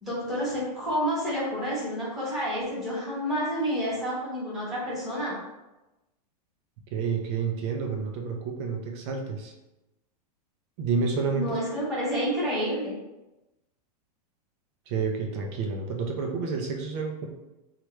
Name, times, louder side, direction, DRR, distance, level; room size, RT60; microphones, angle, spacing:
voice 1, 0.0-5.4 11.3-12.9, equal, ahead, -11 dB, 1.2 m, -29 dB
voice 2, 6.9-9.5 10.8-11.6 14.9-17.3, right 5 dB, 40° right, 2 dB, 0.5 m, -29 dB
3.1 x 2.4 x 3.1 m, 0.99 s
supercardioid pair, 150°, 21 cm